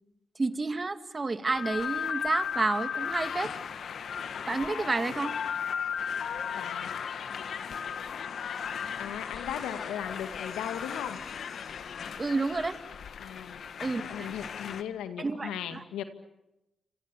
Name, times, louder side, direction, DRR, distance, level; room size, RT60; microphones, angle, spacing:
voice 1, 0.4-3.5 4.5-5.3 12.2-12.8 13.8-14.3 15.2-15.8, right 3 dB, 35° right, 9 dB, 2.4 m, -30 dB
sound 1, 1.5-14.8, left 7 dB, 65° left, 1.7 m, -36 dB
voice 2, 6.5-6.9 7.7-7.8 9.0-11.2 13.2-13.6 14.0-16.0, left 9 dB, 85° left, 9 dB, 2.0 m, -37 dB
29.5 x 27.0 x 7.3 m, 0.94 s
hypercardioid pair, 40°, 0 cm